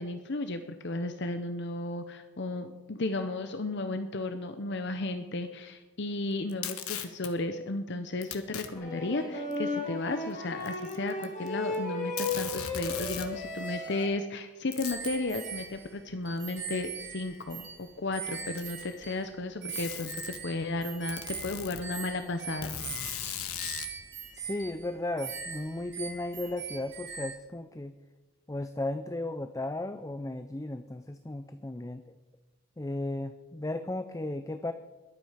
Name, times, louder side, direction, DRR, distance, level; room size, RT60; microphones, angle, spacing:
voice 1, 0.0-22.8, left 2 dB, 50° left, 8 dB, 0.7 m, -34 dB
Packing tape duct tape, 6.5-7.3 8.2-8.7 9.5-9.6 10.6-11.5 11.7-11.8 12.2-13.3 14.7-15.2 16.4-16.5 17.4-17.5 18.3-18.9 19.7-20.4 21.1-21.8 22.6-23.9, left 9 dB, 80° left, 1.3 m, -38 dB
sound 1, 8.7-14.1, left 2 dB, 35° left, 3.7 m, -35 dB
sound 2, 14.8-19.3 19.6-27.4, right 6 dB, 50° right, 2.4 m, -41 dB
voice 2, 24.3-27.9 28.5-32.2 32.8-34.7, left 2 dB, 15° left, 10 dB, 0.4 m, -35 dB
21.5 x 8.5 x 5.0 m, 1.1 s
head